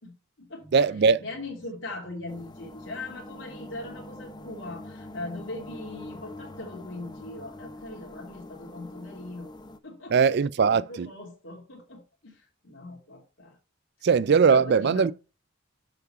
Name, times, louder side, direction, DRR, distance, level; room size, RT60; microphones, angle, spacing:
voice 1, 0.0-0.7 1.2-9.5 9.8-10.1 10.7-13.6 14.3-15.1, left 2 dB, 60° left, 2.5 m, -40 dB
sound 1, 0.6-7.7, right 1 dB, ahead, 2.6 m, -54 dB
voice 2, 0.7-1.2 10.1-11.1 14.0-15.1, right 5 dB, 55° right, 0.4 m, -20 dB
sound 2, 2.3-9.8, left 1 dB, 20° left, 0.7 m, -44 dB
7.0 x 6.7 x 4.4 m
head